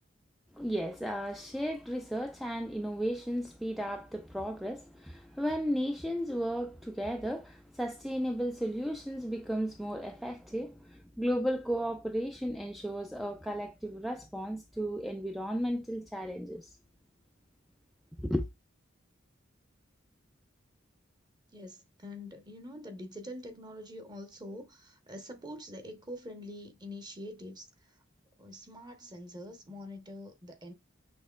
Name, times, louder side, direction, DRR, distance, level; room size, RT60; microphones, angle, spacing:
voice 1, 0.5-16.8 18.2-18.5, equal, ahead, 0.3 m, -34 dB
voice 2, 21.5-28.0 28.4-30.7, left 1 dB, 20° right, 1.0 m, -45 dB
6.2 x 2.9 x 2.3 m
head